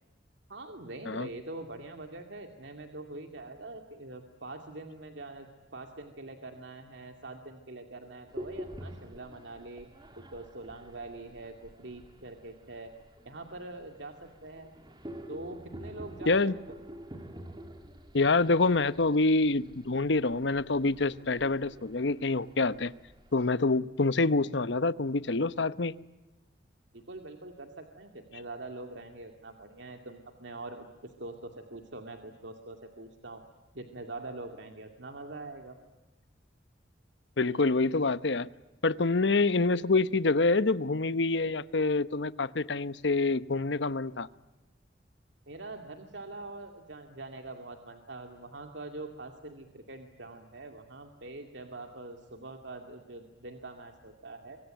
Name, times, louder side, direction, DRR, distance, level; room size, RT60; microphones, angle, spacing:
voice 1, 0.5-9.9 10.1-12.9 13.2-14.8 15.3-16.5 26.9-33.4 33.7-35.8 45.5-54.6, right 2 dB, 75° right, 5 dB, 2.4 m, -44 dB
sound 1, 8.3-23.4, equal, 25° right, 2.6 m, -48 dB
voice 2, 18.1-22.9 23.3-25.9 37.4-38.5 38.8-44.3, left 3 dB, 70° left, 15 dB, 0.9 m, -26 dB
25.5 x 24.5 x 9.1 m, 1.1 s
head